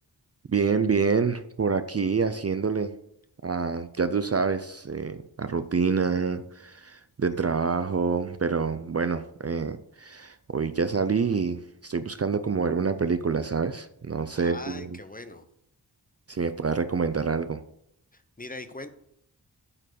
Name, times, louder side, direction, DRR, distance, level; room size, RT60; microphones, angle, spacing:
voice 1, 0.5-2.9 3.4-15.0 16.3-17.6, right 5 dB, 40° right, 11 dB, 0.5 m, -27 dB
voice 2, 14.4-15.4 18.1-18.9, left 2 dB, 20° left, 10 dB, 0.7 m, -41 dB
8.8 x 4.5 x 6.4 m, 0.72 s
wide cardioid pair, 70°, 40 cm